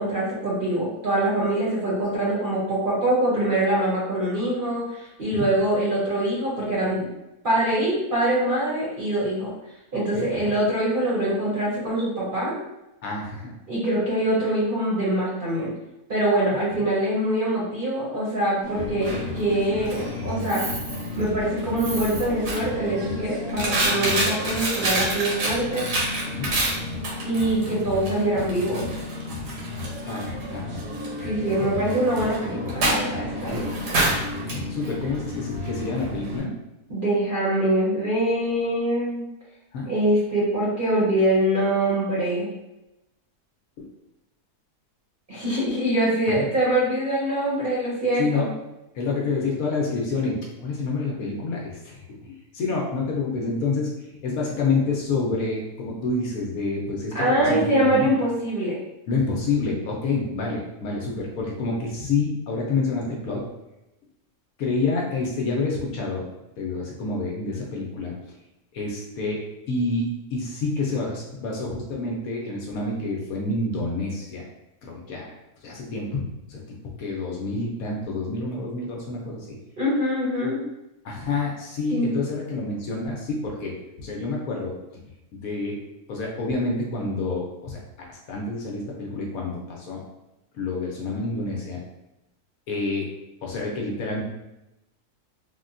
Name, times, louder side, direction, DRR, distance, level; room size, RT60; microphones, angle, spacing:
voice 1, 0.0-7.0 7.4-9.5 9.9-12.6 13.7-15.7 16.1-20.6 21.2-25.9 27.2-28.9 31.2-33.7 36.9-39.2 39.8-42.5 45.3-48.5 57.1-58.8 79.8-80.6 81.9-82.1, right 1 dB, 45° right, -8 dB, 0.8 m, -24 dB
voice 2, 10.1-10.5 13.0-13.5 16.5-16.6 26.3-26.5 30.0-30.7 34.5-36.5 39.7-39.9 43.8-43.9 46.4-46.5 48.2-48.4 48.9-57.1 57.4-58.1 59.1-63.4 64.6-66.2 66.6-68.1 68.7-74.4 74.8-75.3 75.6-76.2 76.5-76.6 77.0-79.6 81.0-83.7 84.0-84.7 85.3-85.8 86.1-87.8 88.1-90.0 90.5-91.8 92.7-93.1 93.4-94.2, left 3 dB, 70° left, -2 dB, 1.0 m, -28 dB
Coin (dropping), 18.6-36.4, equal, 85° right, 1.4 m, -29 dB
3.4 x 2.1 x 2.5 m, 0.92 s
omnidirectional pair, 1.7 m